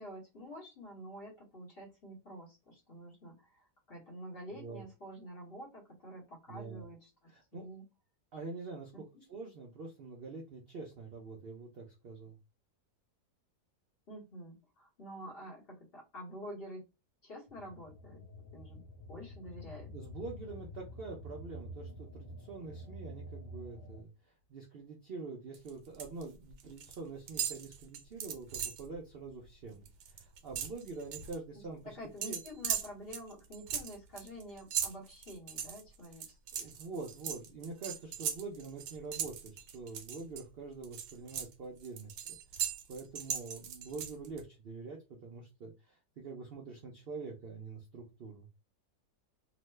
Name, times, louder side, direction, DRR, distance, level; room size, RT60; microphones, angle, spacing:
voice 1, 0.0-7.9 8.9-9.2 14.1-16.8 17.2-18.2 18.5-19.9 31.5-36.7, equal, 45° left, -2 dB, 1.0 m, -48 dB
voice 2, 6.5-6.9 7.3-7.7 8.3-12.4 19.9-24.1 24.5-32.0 32.2-32.4 36.5-48.5, right 3 dB, 60° right, 0 dB, 0.6 m, -45 dB
sound 1, 17.5-24.0, equal, 65° left, 0.9 m, -48 dB
sound 2, 25.5-26.2 26.5-27.0 27.3-28.9 29.3-29.4 29.7-31.4 32.2-40.4 40.8-44.4, right 8 dB, 85° right, 1.2 m, -39 dB
3.0 x 2.1 x 3.1 m, 0.27 s
omnidirectional pair, 1.7 m